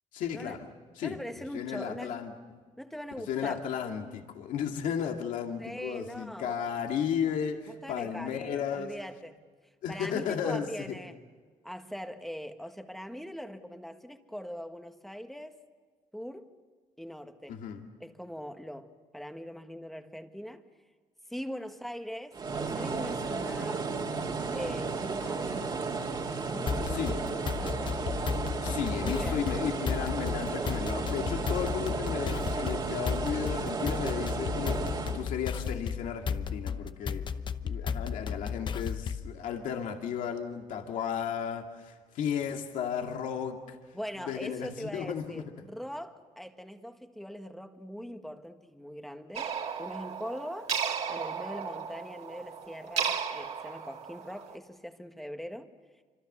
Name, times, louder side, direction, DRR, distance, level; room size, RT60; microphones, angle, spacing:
voice 1, 0.1-0.7 1.0-1.2 1.5-2.6 3.3-8.9 9.8-10.9 17.5-17.8 26.8-27.3 28.6-37.3 37.6-43.8 44.2-45.4, left 8 dB, 80° left, 3 dB, 2.3 m, -34 dB
voice 2, 1.0-2.2 2.8-3.6 5.6-6.6 7.7-9.4 9.9-11.2 11.6-15.6 16.1-16.6 17.0-17.6 18.0-20.7 21.3-23.8 24.5-25.8 26.3-28.0 28.9-29.6 43.9-49.5 49.8-50.7 51.1-55.7, equal, ahead, 6 dB, 1.6 m, -41 dB
sound 1, 22.3-35.3, right 4 dB, 35° right, 2.8 m, -33 dB
sound 2, 26.7-39.3, left 6 dB, 35° left, 0.9 m, -34 dB
sound 3, 49.4-54.6, right 7 dB, 55° right, 2.7 m, -35 dB
27.5 x 25.5 x 6.8 m, 1.5 s
cardioid pair, 120°, 13 cm